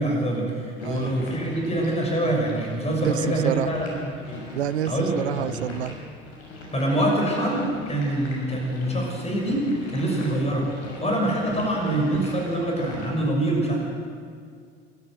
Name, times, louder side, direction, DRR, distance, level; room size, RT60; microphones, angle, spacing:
voice 1, 0.0-4.4 4.9-5.6 6.7-10.7 11.0-13.8, right 1 dB, 20° left, 0 dB, 6.7 m, -25 dB
sound 1, 0.8-13.1, left 1 dB, 50° left, 6.2 m, -40 dB
voice 2, 0.8-1.1 3.0-3.7 4.5-6.0, right 11 dB, 75° right, 17 dB, 0.6 m, -28 dB
26.0 x 13.0 x 8.0 m, 2.1 s
figure-of-eight pair, 65°, 33 cm